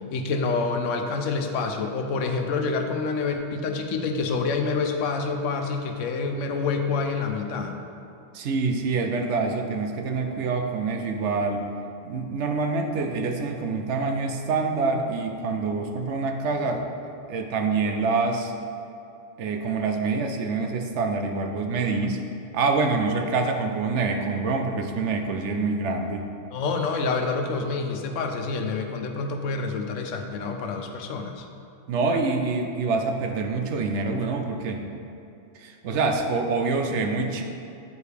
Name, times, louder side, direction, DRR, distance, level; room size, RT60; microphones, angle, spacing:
voice 1, 0.1-7.8 26.5-31.5, left 4 dB, 85° left, 4 dB, 1.0 m, -27 dB
voice 2, 8.3-11.7 12.0-16.8 17.3-18.5 19.4-22.2 22.5-26.3 31.9-34.8 35.6-37.4, right 4 dB, 75° right, 4 dB, 0.9 m, -26 dB
9.5 x 4.7 x 3.4 m, 2.7 s
omnidirectional pair, 1.2 m